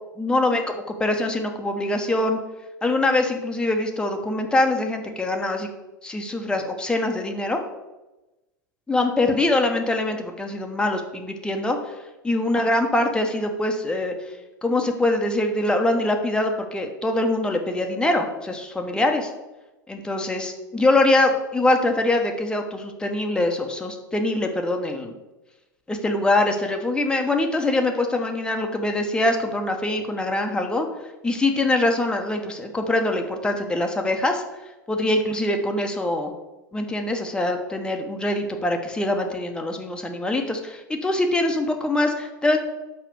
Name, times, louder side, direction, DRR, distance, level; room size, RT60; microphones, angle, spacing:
voice 1, 0.2-0.7 1.0-2.4 2.8-5.7 6.0-7.6 8.9-11.9 12.2-14.1 14.6-19.3 19.9-25.1 25.9-30.9 31.2-34.4 34.9-36.3 36.7-42.6, left 2 dB, 10° left, 4 dB, 1.2 m, -23 dB
5.9 x 5.6 x 6.9 m, 1.0 s
figure-of-eight pair, 85°, 11 cm